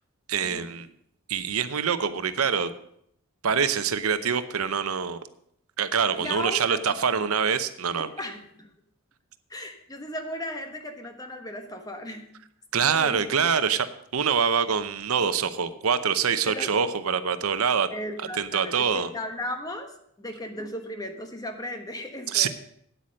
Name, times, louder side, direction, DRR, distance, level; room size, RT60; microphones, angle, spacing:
voice 1, 0.3-0.9 1.3-2.7 3.4-5.2 5.8-8.1 12.7-13.9 14.1-17.9 18.4-19.1 22.3-22.5, right 6 dB, 85° right, 12 dB, 0.7 m, -25 dB
voice 2, 6.2-7.0 7.9-8.7 9.5-12.3 12.7-13.2 16.5-16.8 17.9-22.5, left 1 dB, 15° left, 5 dB, 1.2 m, -36 dB
9.1 x 8.5 x 6.4 m, 0.70 s
head